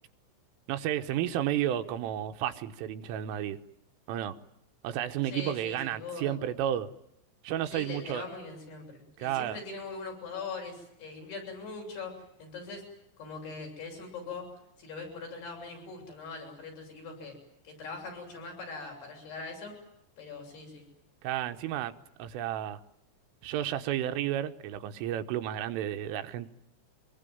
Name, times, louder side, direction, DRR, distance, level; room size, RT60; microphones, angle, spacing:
voice 1, 0.7-3.6 4.1-4.4 4.8-6.9 7.4-8.3 9.2-9.6 21.2-21.9 22.2-22.8 23.4-26.5, right 11 dB, 90° right, 3.7 m, -32 dB
voice 2, 5.2-6.4 7.7-12.8 13.2-14.5 14.8-17.4 17.6-19.7 20.2-20.8, left 4 dB, 55° left, 9.2 m, -41 dB
25.0 x 22.5 x 9.3 m
omnidirectional pair, 5.6 m